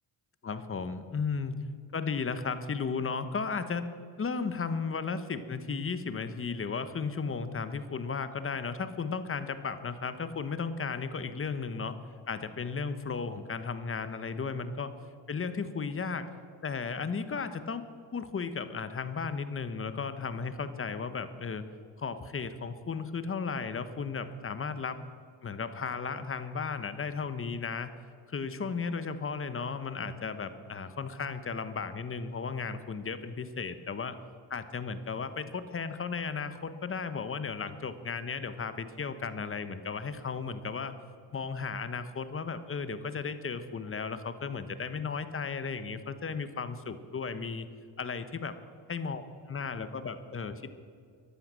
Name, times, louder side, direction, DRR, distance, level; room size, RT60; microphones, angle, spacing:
voice 1, 0.4-1.6 1.9-3.9 4.2-11.9 12.3-14.9 15.3-16.3 16.6-17.8 18.1-21.6 22.0-25.0 25.4-27.9 28.3-34.2 34.5-40.9 41.3-47.7 48.0-48.5 48.9-49.2 49.5-50.8, left 5 dB, 30° left, 11 dB, 1.1 m, -35 dB
13.5 x 11.5 x 7.6 m, 2.2 s
cardioid pair, 100°, 44 cm